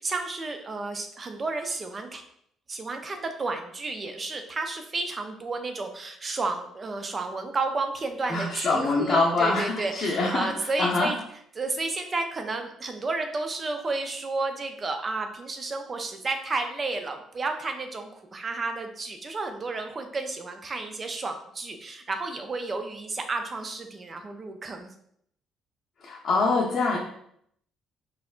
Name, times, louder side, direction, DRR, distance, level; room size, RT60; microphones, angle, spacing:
voice 1, 0.0-2.2 2.7-11.2 11.6-24.9, right 3 dB, 35° right, 6 dB, 0.5 m, -32 dB
voice 2, 8.3-11.1 26.0-27.0, left 3 dB, 45° left, -4 dB, 0.6 m, -25 dB
4.1 x 2.6 x 2.4 m, 0.70 s
figure-of-eight pair, 45°, 0 cm